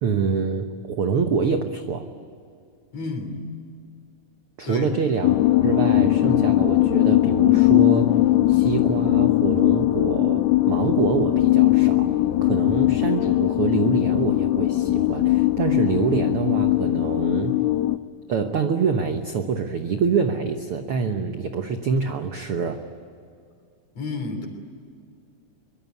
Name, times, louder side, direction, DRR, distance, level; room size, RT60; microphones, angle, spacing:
voice 1, 0.0-2.1 4.6-8.2 8.5-12.2 12.4-17.6 18.3-22.8, right 5 dB, 70° right, 6 dB, 1.3 m, -25 dB
voice 2, 2.9-3.4 4.7-4.9 24.0-24.5, left 3 dB, 45° left, 4 dB, 4.3 m, -31 dB
sound 1, 5.2-18.0, left 16 dB, 80° left, 1.6 m, -20 dB
24.0 x 23.0 x 9.5 m, 2.4 s
omnidirectional pair, 4.1 m